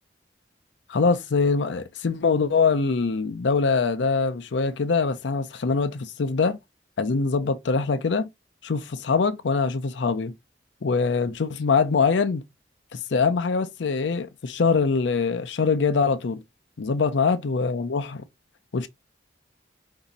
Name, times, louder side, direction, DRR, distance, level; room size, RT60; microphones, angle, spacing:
voice 1, 0.9-6.6 7.0-8.3 8.6-10.3 10.8-12.4 12.9-16.4 16.8-18.2 18.7-18.9, left 4 dB, 90° left, 0.5 m, -23 dB
4.8 x 2.7 x 4.0 m
head